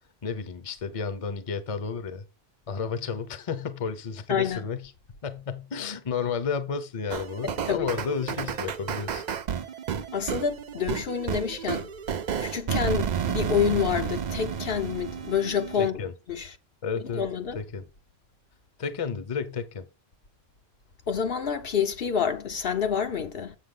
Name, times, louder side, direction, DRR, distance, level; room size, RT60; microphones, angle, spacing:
voice 1, 0.2-2.2 2.7-4.9 5.2-9.2 15.8-16.1 16.8-17.2 17.5-17.9 18.8-19.9, left 6 dB, 35° left, 0.8 m, -32 dB
voice 2, 4.3-4.6 7.4-7.9 10.1-11.9 12.4-16.0 16.3-16.5 17.1-17.6 21.1-23.5, left 7 dB, 65° left, 1.0 m, -28 dB
sound 1, 7.1-15.9, right 7 dB, 50° right, 0.6 m, -31 dB
7.4 x 6.5 x 3.8 m
omnidirectional pair, 1.1 m